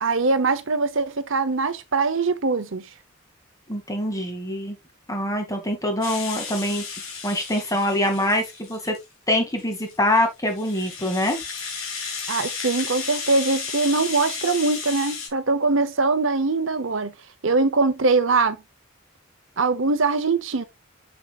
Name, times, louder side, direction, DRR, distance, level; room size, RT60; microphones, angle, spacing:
voice 1, 0.0-2.9 12.3-17.1 17.4-18.6 19.6-20.6, right 3 dB, 65° right, 0.9 m, -22 dB
voice 2, 3.7-4.8 5.1-9.0 9.3-11.4, left 1 dB, 15° left, 2.3 m, -24 dB
Rattle (instrument), 6.0-9.0 9.6-15.3, left 5 dB, 75° left, 3.7 m, -33 dB
7.2 x 7.2 x 2.4 m
head